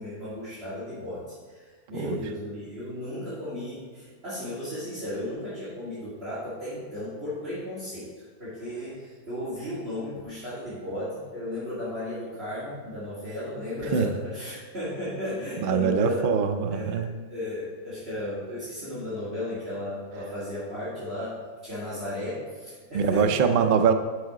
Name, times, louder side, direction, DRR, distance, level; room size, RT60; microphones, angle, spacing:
voice 1, 0.0-8.1 8.4-16.3 16.7-23.7, left 1 dB, 40° right, -10 dB, 2.4 m, -35 dB
voice 2, 15.6-17.1 22.9-23.9, right 6 dB, 75° right, 7 dB, 0.4 m, -23 dB
9.8 x 4.8 x 4.8 m, 1.5 s
omnidirectional pair, 1.6 m